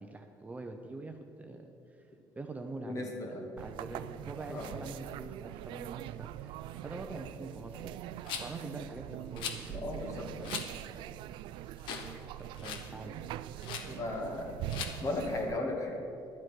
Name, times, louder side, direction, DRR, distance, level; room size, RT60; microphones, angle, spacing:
voice 1, 0.0-2.0 2.3-6.6 6.8-8.0 8.4-10.6 12.4-13.2, right 2 dB, 20° right, 4 dB, 0.7 m, -45 dB
voice 2, 2.9-3.5 4.5-4.7 9.7-10.3 13.9-14.5 15.0-16.0, left 2 dB, 40° left, 1 dB, 2.2 m, -35 dB
sound 1, 3.6-15.6, right 13 dB, 80° right, 0.3 m, -43 dB
Rattle, 8.3-8.6 9.4-9.6 10.4-10.7 11.2-11.3 11.8-12.1 12.4-12.9 13.6-13.9 14.7-14.9, left 7 dB, 85° left, 1.1 m, -39 dB
12.0 x 8.0 x 6.1 m, 2.6 s
cardioid pair, 110°, 8 cm